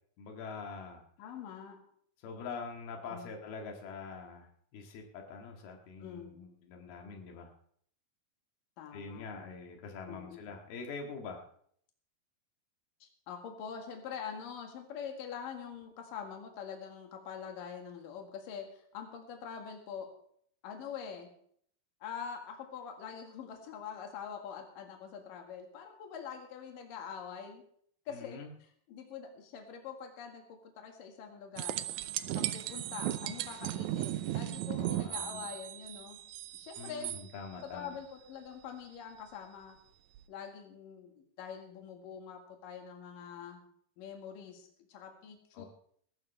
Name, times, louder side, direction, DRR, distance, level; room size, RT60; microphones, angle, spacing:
voice 1, 0.2-1.0 2.2-4.5 4.7-7.5 8.9-11.4 28.1-28.5 34.7-35.5 36.8-37.9 45.6-45.7, left 4 dB, 90° left, 2 dB, 3.8 m, -44 dB
voice 2, 1.2-1.8 3.1-3.4 6.0-6.4 8.8-9.3 10.1-10.5 13.0-20.1 20.6-21.3 22.0-27.6 28.1-31.8 32.3-36.2 36.5-37.1 37.6-39.8 40.3-43.6 44.0-45.7, left 7 dB, 65° left, 3 dB, 3.4 m, -45 dB
sound 1, 31.6-37.2 40.1-40.2, right 14 dB, 85° right, 1.7 m, -36 dB
20.5 x 12.5 x 3.4 m, 0.62 s
omnidirectional pair, 4.3 m